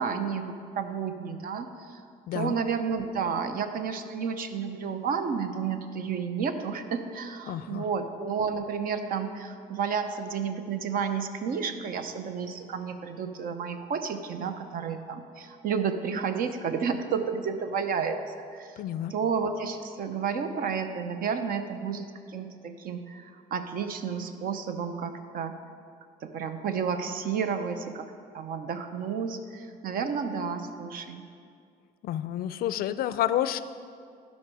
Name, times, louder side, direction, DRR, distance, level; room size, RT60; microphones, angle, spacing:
voice 1, 0.0-2.0 2.3-18.2 18.5-18.7 19.1-25.6 26.2-28.1 28.3-31.2, right 6 dB, 60° right, 8 dB, 0.7 m, -31 dB
voice 2, 7.5-7.9 18.8-19.1 32.0-33.6, left 12 dB, 60° left, 14 dB, 0.4 m, -29 dB
12.0 x 5.4 x 4.8 m, 2.3 s
cardioid pair, 110°, 17 cm